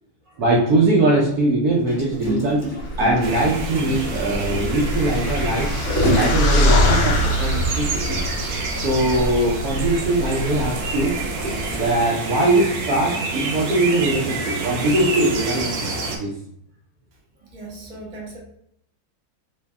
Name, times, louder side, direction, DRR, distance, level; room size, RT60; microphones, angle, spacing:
voice 1, 0.4-2.7 3.0-5.7 6.1-8.2 8.8-11.2 11.7-16.3, right 2 dB, 65° right, -3 dB, 0.9 m, -21 dB
Gurgling, 1.9-7.4 7.9-8.0 8.3-8.5 8.8-8.9 9.7-12.2 12.8-13.0, equal, 15° left, 0.7 m, -28 dB
sound 1, 2.8-11.9, left 1 dB, 70° left, 1.2 m, -24 dB
sound 2, 3.2-16.2, right 3 dB, 85° right, 1.4 m, -29 dB
voice 2, 17.4-18.4, right 2 dB, 40° right, -4 dB, 0.4 m, -38 dB
3.3 x 2.6 x 3.4 m, 0.73 s
omnidirectional pair, 2.2 m